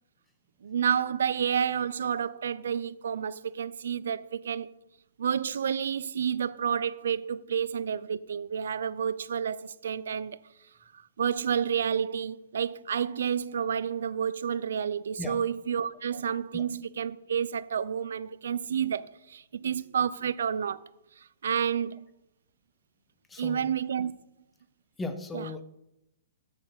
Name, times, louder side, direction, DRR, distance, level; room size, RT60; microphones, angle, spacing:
voice 1, 0.6-4.7 5.2-10.4 11.2-20.8 21.4-22.0 23.4-24.1 25.3-25.5, right 8 dB, 80° right, 0.4 m, -30 dB
voice 2, 23.3-23.7 25.0-25.6, left 3 dB, 10° left, 0.9 m, -37 dB
7.6 x 6.8 x 5.6 m
hypercardioid pair, 140°, 0 cm